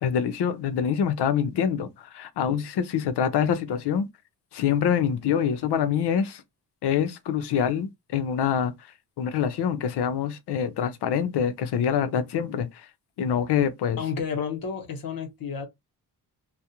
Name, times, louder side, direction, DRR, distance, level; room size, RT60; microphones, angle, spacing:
voice 1, 0.0-4.1 4.5-6.4 6.8-8.7 9.2-12.9 13.2-14.0, left 8 dB, 80° left, 0.6 m, -25 dB
voice 2, 14.0-15.7, left 6 dB, 60° left, 1.0 m, -31 dB
2.3 x 2.1 x 2.7 m
cardioid pair, 105°, 39 cm